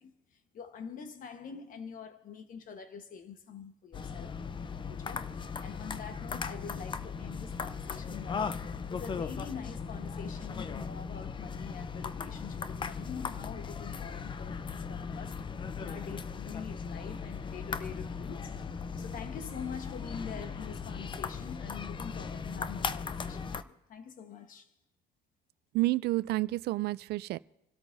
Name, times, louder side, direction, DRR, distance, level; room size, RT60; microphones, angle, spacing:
voice 1, 0.0-4.4 4.8-15.4 15.8-18.6 19.0-24.7, left 6 dB, 55° left, 1.3 m, -45 dB
sound 1, 3.9-23.6, left 5 dB, 30° left, 0.6 m, -38 dB
voice 2, 25.7-27.4, right 18 dB, 75° right, 0.4 m, -29 dB
27.5 x 12.5 x 2.7 m
cardioid pair, 110°, 17 cm